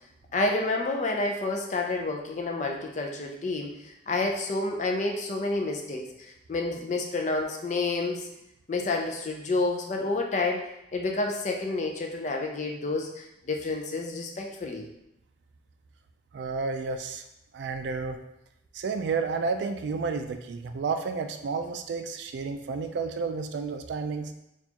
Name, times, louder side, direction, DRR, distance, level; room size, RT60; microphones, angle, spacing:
voice 1, 0.3-8.3 8.7-14.9, left 2 dB, 40° left, 2 dB, 0.4 m, -29 dB
voice 2, 16.3-17.2 17.5-18.2 18.7-24.3, right 4 dB, 70° right, 7 dB, 0.3 m, -31 dB
4.2 x 2.4 x 2.8 m, 0.85 s
head